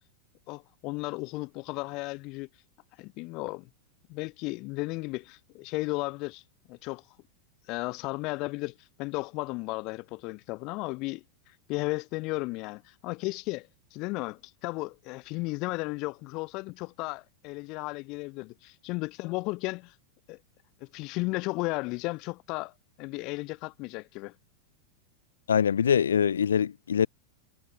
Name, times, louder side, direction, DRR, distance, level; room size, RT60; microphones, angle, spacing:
voice 1, 0.5-2.5 3.0-3.7 4.1-6.4 6.7-7.0 7.7-19.9 20.3-20.4 20.8-22.7 23.0-24.3, left 24 dB, 40° left, 5.5 m, -34 dB
voice 2, 25.5-27.1, left 8 dB, 70° left, 6.4 m, -23 dB
figure-of-eight pair, 90°, 0 cm